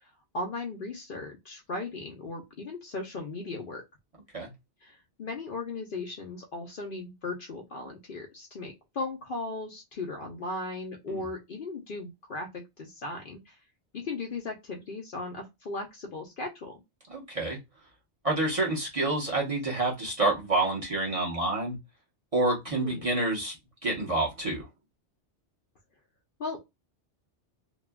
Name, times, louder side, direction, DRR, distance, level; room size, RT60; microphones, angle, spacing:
voice 1, 0.3-3.8 4.8-13.6 13.9-16.8 22.8-23.1 26.4-26.7, left 3 dB, 55° left, 0.8 m, -37 dB
voice 2, 17.1-17.6 18.2-21.7 22.3-23.5 23.8-24.7, right 2 dB, 30° right, 1.0 m, -28 dB
2.8 x 2.4 x 2.3 m
omnidirectional pair, 1.2 m